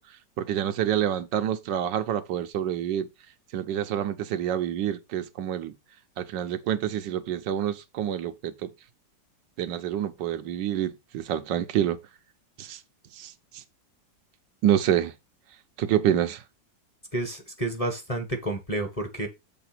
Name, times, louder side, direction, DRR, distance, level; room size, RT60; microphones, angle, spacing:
voice 1, 0.4-3.1 3.5-5.7 6.2-8.7 9.6-12.0 12.6-12.8 13.2-13.6 14.6-15.1 15.8-16.4, right 10 dB, 80° right, 1.4 m, -27 dB
voice 2, 17.1-19.3, right 1 dB, 25° left, 1.1 m, -30 dB
6.9 x 3.7 x 5.9 m
omnidirectional pair, 2.0 m